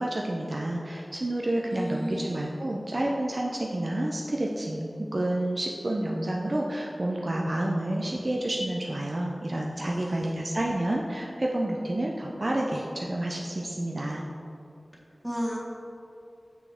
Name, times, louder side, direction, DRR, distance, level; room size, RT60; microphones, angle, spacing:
voice 1, 0.0-14.2, right 1 dB, 50° right, -1 dB, 0.5 m, -29 dB
voice 2, 1.7-2.4 9.8-10.3 15.2-15.6, equal, 10° right, -4 dB, 1.4 m, -33 dB
6.3 x 5.7 x 3.6 m, 2.7 s
wide cardioid pair, 50°, 0 cm